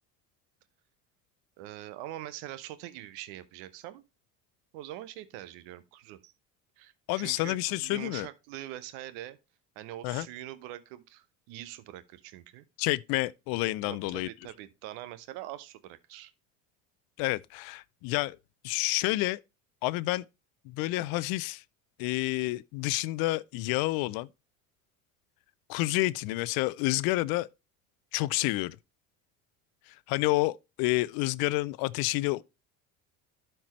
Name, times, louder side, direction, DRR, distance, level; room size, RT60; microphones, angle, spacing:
voice 1, 1.6-4.0 4.7-6.3 6.8-9.4 9.8-12.6 13.8-16.3, right 14 dB, 70° right, 0.9 m, -43 dB
voice 2, 7.1-8.3 10.0-10.3 12.8-14.3 17.2-18.4 18.6-19.4 19.8-20.2 20.7-21.6 22.0-24.3 25.7-27.5 28.1-28.8 29.9-32.4, left 20 dB, 60° left, 0.5 m, -29 dB
12.0 x 4.5 x 3.0 m
hypercardioid pair, 80°, 40 cm